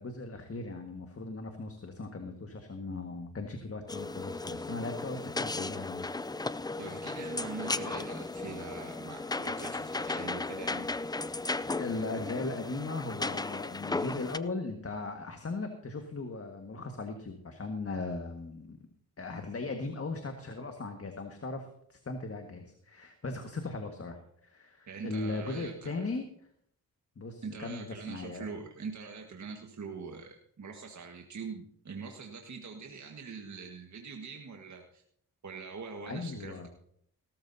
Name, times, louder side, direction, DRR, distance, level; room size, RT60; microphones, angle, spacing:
voice 1, 0.0-6.1 11.8-18.8 19.2-26.2 27.2-28.5 36.1-36.7, left 3 dB, 35° left, 4 dB, 1.8 m, -38 dB
sound 1, 3.9-14.4, left 3 dB, 10° left, 0.4 m, -35 dB
voice 2, 6.8-10.9 24.9-26.1 27.4-35.0 35.4-36.7, right 5 dB, 45° right, 2 dB, 1.7 m, -43 dB
17.5 x 13.5 x 2.8 m, 0.66 s
cardioid pair, 60°, 38 cm